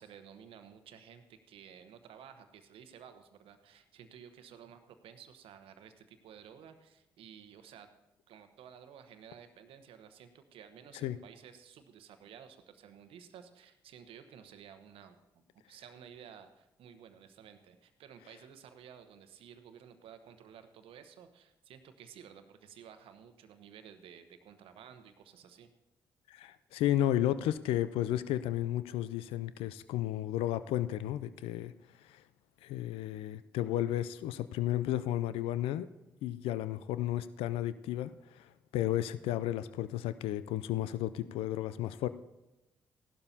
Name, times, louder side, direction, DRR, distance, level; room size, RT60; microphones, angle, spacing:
voice 1, 0.0-7.9 8.3-25.7, right 8 dB, 70° right, 9 dB, 1.0 m, -54 dB
voice 2, 26.3-31.7 32.1-32.2 32.6-35.9 36.2-42.1, left 13 dB, 75° left, 14 dB, 0.4 m, -33 dB
16.0 x 12.0 x 2.8 m, 0.96 s
hypercardioid pair, 40°, 10 cm